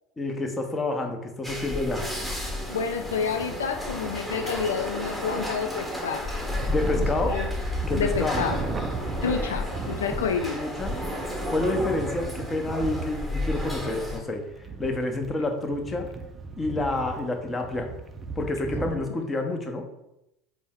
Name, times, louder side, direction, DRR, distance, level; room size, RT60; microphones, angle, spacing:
voice 1, 0.2-2.0 6.7-7.4 7.9-8.5 10.1-11.0 11.4-14.4 14.8-16.1 16.6-17.9 18.4-19.8, left 2 dB, 20° left, 4 dB, 0.7 m, -28 dB
sound 1, 1.4-14.2, left 1 dB, 5° left, 1.0 m, -32 dB
voice 2, 2.7-6.2 6.9-7.5 8.0-8.6 9.2-10.6, left 6 dB, 85° left, 6 dB, 0.3 m, -29 dB
sound 2, 6.4-19.0, right 4 dB, 25° right, 0.4 m, -37 dB
4.3 x 2.1 x 3.5 m, 0.87 s
hypercardioid pair, 80°, 0 cm